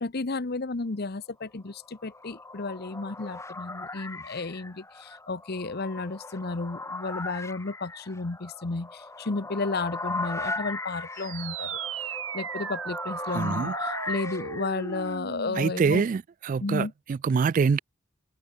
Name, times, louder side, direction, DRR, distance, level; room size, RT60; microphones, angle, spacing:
voice 1, 0.0-11.8 12.3-16.0 16.6-16.9, left 3 dB, 50° left, 0.9 m, -33 dB
sound 1, 1.8-15.2, left 2 dB, 15° left, 3.0 m, -38 dB
sound 2, 11.1-16.2, right 6 dB, 70° right, 2.3 m, -37 dB
voice 2, 13.3-13.7 15.6-17.8, right 5 dB, 40° right, 0.3 m, -25 dB
head